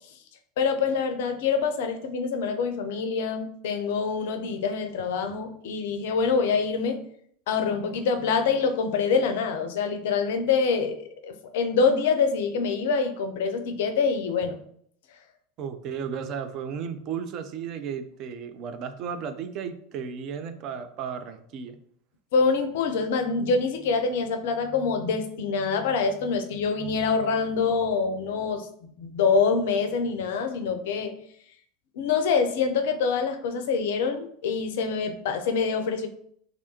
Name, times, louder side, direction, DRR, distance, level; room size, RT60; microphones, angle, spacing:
voice 1, 0.6-7.0 7.5-14.6 22.3-31.1 32.0-36.1, left 5 dB, 60° left, 7 dB, 0.4 m, -25 dB
voice 2, 15.6-21.8, right 7 dB, 45° right, 9 dB, 0.3 m, -34 dB
3.3 x 2.5 x 2.7 m, 0.64 s
figure-of-eight pair, 80°, 0 cm